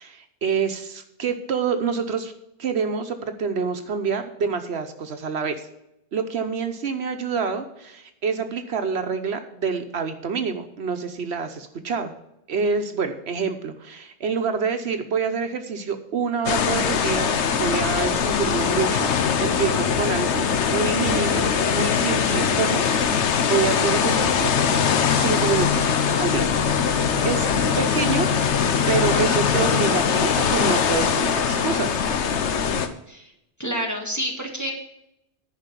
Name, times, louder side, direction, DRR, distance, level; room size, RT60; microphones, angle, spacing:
voice 1, 0.0-2.3 2.6-5.7 6.1-12.1 12.5-19.1 19.4-24.5 25.1-28.3 28.9-32.0, right 5 dB, 70° right, 7 dB, 1.1 m, -27 dB
sound 1, 16.5-32.9, left 6 dB, 90° left, 1.1 m, -22 dB
sound 2, 24.4-30.0, left 7 dB, 55° left, 1.8 m, -30 dB
voice 2, 27.7-28.1 33.1-33.3 33.6-34.7, equal, 15° left, 0 dB, 2.0 m, -29 dB
10.5 x 5.0 x 8.2 m, 0.83 s
omnidirectional pair, 1.1 m